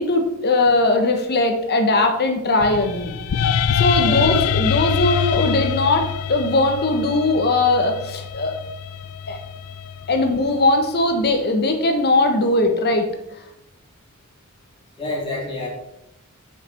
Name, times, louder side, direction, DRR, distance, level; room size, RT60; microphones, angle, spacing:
voice 1, 0.0-3.2 3.8-8.5 9.3-9.4 10.1-13.1, left 2 dB, 50° left, 5 dB, 1.2 m, -19 dB
sound 1, 2.6-10.8, left 7 dB, 85° left, 0.4 m, -25 dB
voice 2, 4.0-4.4 15.0-15.7, left 2 dB, 25° left, -6 dB, 3.4 m, -28 dB
8.1 x 5.9 x 4.5 m, 0.86 s
head